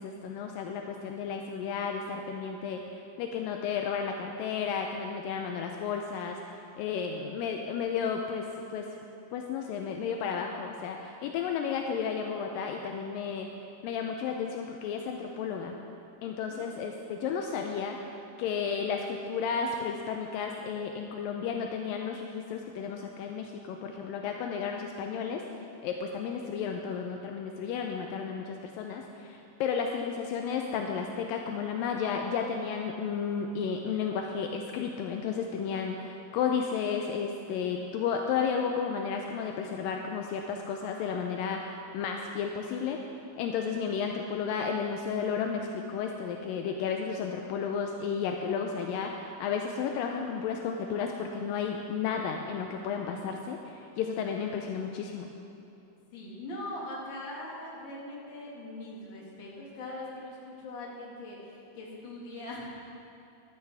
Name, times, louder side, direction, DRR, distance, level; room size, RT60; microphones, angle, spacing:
voice 1, 0.0-6.4 6.8-8.9 9.3-13.5 13.8-15.7 16.2-25.4 25.8-55.3, left 6 dB, 85° left, 3 dB, 2.0 m, -33 dB
voice 2, 16.2-16.6 23.8-24.1 54.0-54.3 56.1-61.4 61.7-62.7, left 1 dB, 40° left, -4 dB, 1.9 m, -41 dB
12.5 x 12.5 x 3.4 m, 2.7 s
omnidirectional pair, 4.5 m